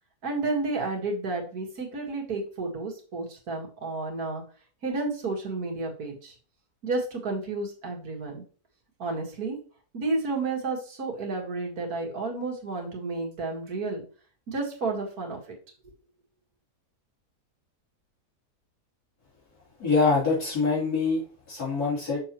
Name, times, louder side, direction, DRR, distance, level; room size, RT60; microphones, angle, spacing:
voice 1, 0.2-4.4 4.8-6.3 6.8-8.4 9.0-9.6 9.9-14.0 14.5-15.6, right 3 dB, 75° right, 0 dB, 2.2 m, -31 dB
voice 2, 19.8-22.2, left 4 dB, 80° left, -7 dB, 3.9 m, -25 dB
6.7 x 6.4 x 3.0 m, 0.41 s
omnidirectional pair, 1.6 m